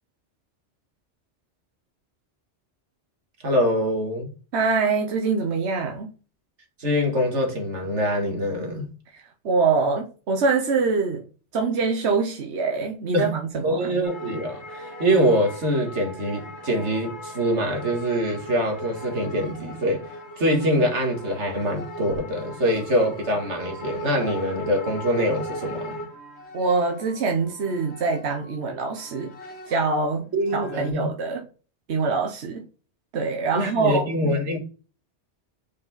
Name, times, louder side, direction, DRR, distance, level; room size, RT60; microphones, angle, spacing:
voice 1, 3.4-4.3 6.8-8.9 13.1-13.3 13.6-20.0 20.4-26.0 30.3-31.1 33.5-34.6, equal, 90° right, 2.0 m, -24 dB
voice 2, 4.5-6.1 9.1-11.2 11.5-13.9 26.5-29.3 29.7-31.4 31.9-32.7 33.1-34.1, right 4 dB, 70° right, 1.2 m, -24 dB
sound 1, 14.0-28.6 28.9-30.1 30.5-30.9, equal, 70° left, 1.5 m, -38 dB
5.3 x 4.9 x 4.0 m
omnidirectional pair, 1.2 m